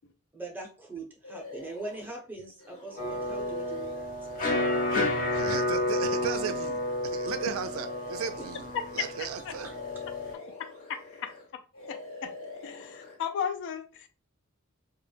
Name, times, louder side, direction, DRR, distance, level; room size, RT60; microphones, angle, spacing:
voice 1, 0.3-4.1, right 2 dB, 10° right, 0.6 m, -41 dB
sound 1, 1.2-2.2 2.6-9.2 9.5-11.5 11.7-13.2, left 4 dB, 75° left, 1.2 m, -44 dB
sound 2, 3.0-10.3, left 1 dB, 40° left, 0.7 m, -31 dB
voice 2, 4.8-5.2 9.5-9.6 11.2-11.3 11.9-12.3 12.6-14.1, left 7 dB, 55° left, 0.3 m, -35 dB
voice 3, 5.3-9.7, right 7 dB, 65° right, 0.3 m, -36 dB
2.2 x 2.0 x 3.1 m
head